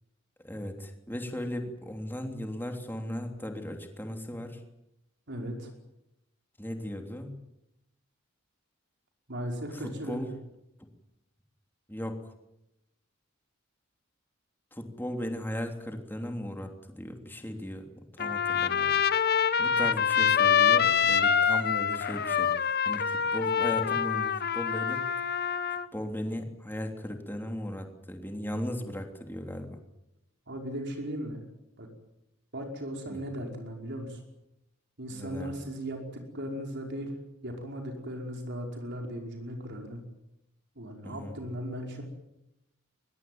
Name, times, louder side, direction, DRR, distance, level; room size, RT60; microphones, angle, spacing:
voice 1, 0.4-4.6 6.6-7.3 9.7-10.3 11.9-12.3 14.7-19.0 19.6-25.1 25.9-29.8 33.1-33.2 35.1-35.5 41.0-41.4, equal, 10° left, 4 dB, 3.2 m, -37 dB
voice 2, 5.3-5.7 9.3-10.2 30.5-31.4 31.8-31.9 32.5-34.2 35.0-37.1 37.4-40.0 40.8-42.0, equal, 55° right, 2 dB, 5.3 m, -37 dB
Trumpet, 18.2-25.9, left 7 dB, 50° left, 1.2 m, -25 dB
23.0 x 21.0 x 9.4 m, 0.86 s
head